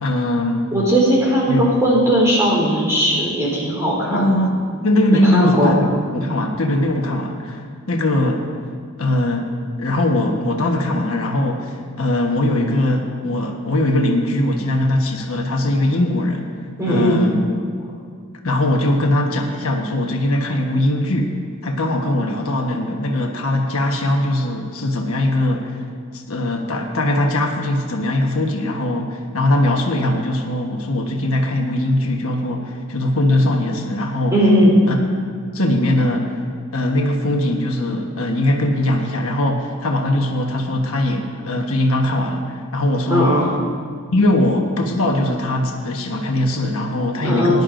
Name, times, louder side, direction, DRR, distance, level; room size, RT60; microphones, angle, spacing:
voice 1, 0.0-0.7 1.5-1.7 4.1-8.4 9.0-9.5 9.8-16.5 16.9-17.4 18.4-25.8 26.1-34.4 34.9-35.0 35.5-36.3 36.7-43.4 44.1-47.6, left 1 dB, 75° left, 1 dB, 1.2 m, -20 dB
voice 2, 0.7-4.3 5.3-5.9 16.8-17.2 34.3-34.7 43.1-43.5 47.2-47.6, equal, 15° right, -5 dB, 3.6 m, -17 dB
19.0 x 11.0 x 2.6 m, 2.1 s
head